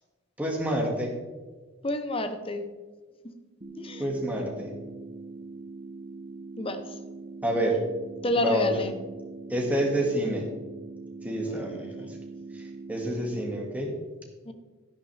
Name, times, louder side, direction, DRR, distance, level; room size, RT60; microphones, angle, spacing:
voice 1, 0.4-1.1 4.0-4.7 7.4-7.8 8.4-8.9 9.5-10.5 11.2-12.1 12.5-12.6 12.9-13.9, equal, 5° right, -1 dB, 2.0 m, -28 dB
voice 2, 1.8-2.6 3.2-3.3 3.8-4.0 6.6-6.8 8.2-8.9 11.4-12.1 14.5-14.6, left 1 dB, 25° left, 8 dB, 0.8 m, -30 dB
sound 1, 3.6-13.6, right 3 dB, 30° right, 1.0 m, -42 dB
12.0 x 11.0 x 3.4 m, 1.3 s
head